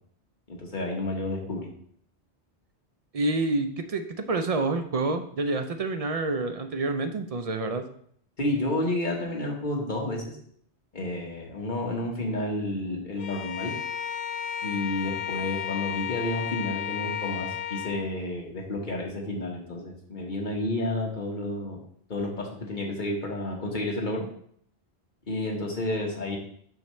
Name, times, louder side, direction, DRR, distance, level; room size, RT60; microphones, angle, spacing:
voice 1, 0.5-1.7 8.4-10.4 10.9-13.7 14.6-21.8 22.1-24.3 25.3-26.4, left 1 dB, 45° left, -1 dB, 1.5 m, -30 dB
voice 2, 3.1-7.9, right 2 dB, 50° right, 7 dB, 0.4 m, -28 dB
Bowed string instrument, 13.2-18.1, left 10 dB, 60° left, 0.7 m, -33 dB
7.0 x 5.7 x 3.2 m, 0.63 s
omnidirectional pair, 1.2 m